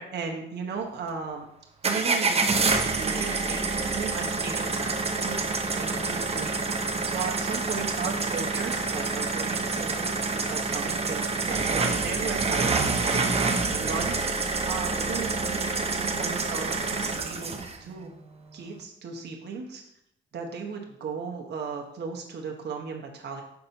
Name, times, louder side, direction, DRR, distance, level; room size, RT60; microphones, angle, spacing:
voice 1, 0.0-1.4 1.8-3.7 3.9-4.9 5.2-5.4 5.7-6.5 7.0-13.3 13.8-14.3 14.7-18.1 18.5-19.8 20.3-23.4, right 5 dB, 55° right, 1 dB, 1.0 m, -36 dB
sound 1, 1.8-17.8, right 3 dB, 30° right, 0.7 m, -27 dB
5.8 x 4.2 x 4.0 m, 0.77 s
cardioid pair, 80°, 20 cm